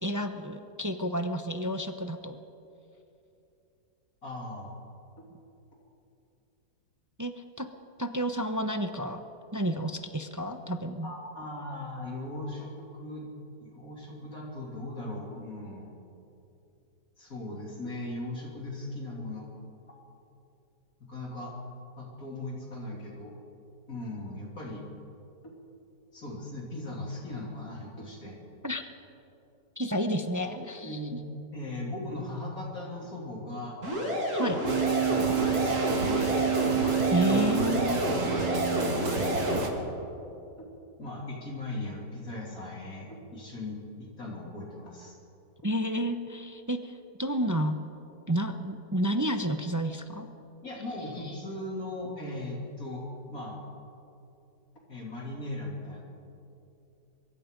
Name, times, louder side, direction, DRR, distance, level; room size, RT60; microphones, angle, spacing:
voice 1, 0.0-2.4 7.2-7.7 8.0-9.2 9.5-11.1 28.6-28.9 29.8-31.2 34.3-34.6 37.1-38.1 45.6-47.8 48.3-50.3, equal, 25° right, 7 dB, 0.4 m, -30 dB
voice 2, 4.2-4.8 5.2-5.3 11.0-13.3 13.6-16.0 17.2-19.5 19.9-20.0 21.0-21.5 22.0-23.3 23.9-24.9 25.4-25.5 26.1-28.4 30.7-31.2 31.5-33.8 35.0-36.3 37.2-37.4 37.8-39.6 40.6-40.7 41.0-45.2 50.6-53.6 54.9-56.0, left 2 dB, 50° left, -2 dB, 3.4 m, -39 dB
sound 1, 33.8-39.6, equal, 45° right, 5.4 m, -29 dB
sound 2, 34.7-39.7, right 8 dB, 90° right, 2.4 m, -29 dB
23.5 x 23.0 x 5.3 m, 2.7 s
omnidirectional pair, 1.9 m